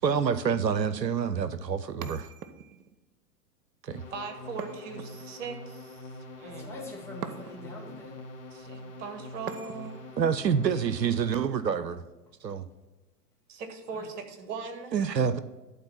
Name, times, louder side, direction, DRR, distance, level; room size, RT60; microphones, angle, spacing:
voice 1, 0.0-2.3 3.8-4.0 10.2-12.0 12.4-12.6 14.9-15.4, right 7 dB, 90° right, 0.6 m, -27 dB
sound 1, 2.0-3.0 4.6-5.6 7.2-7.8 9.5-10.1, right 7 dB, 65° right, 0.8 m, -42 dB
sound 2, 3.9-11.5, left 2 dB, 35° left, 2.6 m, -45 dB
voice 2, 4.1-6.1 6.4-6.7 8.5-9.9 13.5-14.9, right 5 dB, 45° right, 1.4 m, -39 dB
voice 3, 6.4-8.2 13.9-14.1, left 2 dB, 5° left, 2.4 m, -44 dB
11.5 x 4.0 x 5.8 m
figure-of-eight pair, 100°, 49 cm